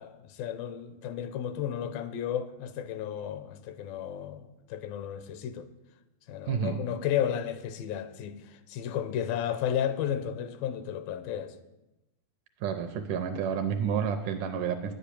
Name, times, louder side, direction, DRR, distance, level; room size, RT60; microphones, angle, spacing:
voice 1, 0.0-5.7 6.3-11.6, left 9 dB, 80° left, 2.5 m, -33 dB
voice 2, 6.5-6.8 12.6-14.9, right 7 dB, 75° right, 2.0 m, -30 dB
10.5 x 8.4 x 8.5 m
omnidirectional pair, 4.3 m